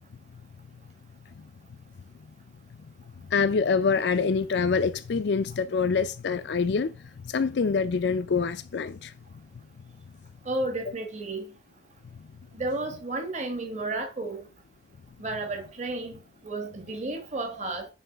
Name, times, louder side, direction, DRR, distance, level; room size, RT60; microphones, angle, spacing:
voice 1, 3.3-6.9 7.2-9.1, left 5 dB, 65° left, 0.4 m, -25 dB
voice 2, 10.4-11.5 12.5-14.4 15.2-16.2 16.4-17.9, right 2 dB, 40° right, 1.3 m, -32 dB
7.1 x 3.1 x 6.0 m
head